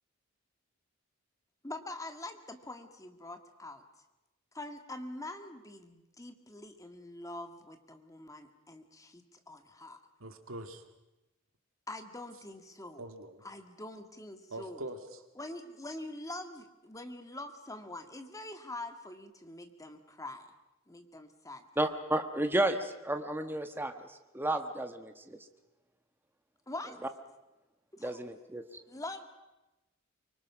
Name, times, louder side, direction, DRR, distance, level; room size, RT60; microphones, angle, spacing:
voice 1, 1.6-3.8 4.5-10.0 11.9-13.1 13.4-14.8 15.4-20.5 20.9-21.7 26.7-27.0 28.0-28.2 28.9-29.2, left 2 dB, 15° left, 6 dB, 1.8 m, -44 dB
voice 2, 10.2-10.8 13.0-13.4 14.5-15.2, right 1 dB, 85° right, 6 dB, 2.3 m, -43 dB
voice 3, 21.8-25.4 28.0-28.6, right 1 dB, 10° right, 6 dB, 1.3 m, -32 dB
24.5 x 24.5 x 6.1 m, 1.0 s
head